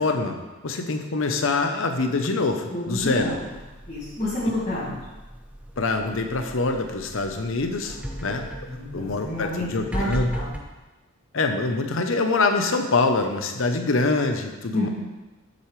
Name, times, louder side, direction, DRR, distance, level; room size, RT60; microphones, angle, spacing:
voice 1, 0.0-3.3 5.8-8.4 8.9-10.3 11.3-14.9, left 3 dB, 70° left, 5 dB, 0.7 m, -25 dB
voice 2, 2.7-3.4 3.9-5.0 7.8-8.2 8.6-10.5 14.7-14.9, left 1 dB, 30° left, -13 dB, 2.3 m, -29 dB
sound 1, 2.9-10.6, right 1 dB, 5° right, 0.4 m, -37 dB
7.8 x 6.8 x 3.2 m, 1.1 s
head